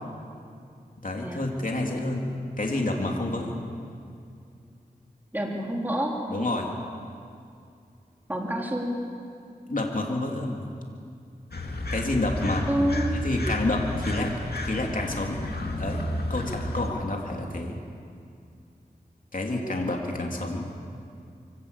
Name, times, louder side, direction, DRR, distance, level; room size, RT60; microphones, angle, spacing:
voice 1, 1.0-2.3 2.6-3.6 6.3-6.7 9.7-10.6 11.9-12.7 13.2-15.4 15.7-17.8 19.3-20.7, left 2 dB, 55° left, 0 dB, 3.1 m, -29 dB
voice 2, 5.3-6.2 8.3-9.0 12.7-13.1, equal, 10° right, -1 dB, 3.7 m, -27 dB
sound 1, 11.5-16.9, left 1 dB, 75° left, 2.4 m, -31 dB
24.5 x 16.0 x 8.4 m, 2.4 s
wide cardioid pair, 45°, 16 cm